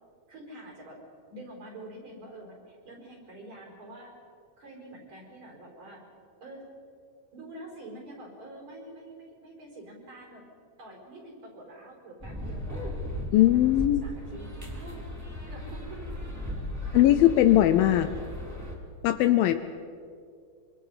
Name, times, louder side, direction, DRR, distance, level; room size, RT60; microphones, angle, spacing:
voice 1, 0.3-1.0 1.3-4.1 4.6-6.0 6.4-6.7 7.3-10.5 10.8-12.8 13.3-13.6 14.0-15.0 15.5-16.1 16.9-17.0 17.9-18.1, right 1 dB, 45° right, -1 dB, 6.3 m, -46 dB
sound 1, 12.2-18.7, left 1 dB, 5° right, 3.3 m, -36 dB
voice 2, 13.3-14.0 16.9-18.1 19.0-19.6, left 13 dB, 80° left, 9 dB, 2.3 m, -20 dB
26.0 x 26.0 x 5.7 m, 2.3 s
omnidirectional pair, 4.4 m